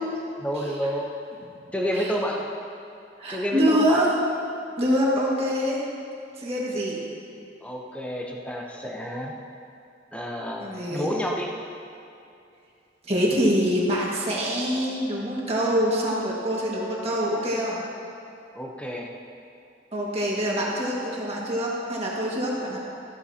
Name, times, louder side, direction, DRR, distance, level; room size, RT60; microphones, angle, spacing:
voice 1, 0.4-1.1 1.7-2.5 3.3-4.1 7.6-9.4 10.1-11.5 18.5-19.1, equal, 5° left, -1 dB, 0.8 m, -29 dB
voice 2, 3.2-4.1 4.8-5.8 6.4-7.0 10.6-11.1 13.0-17.8 19.9-22.8, equal, 35° right, -4 dB, 1.8 m, -25 dB
14.0 x 12.5 x 2.8 m, 2.6 s
head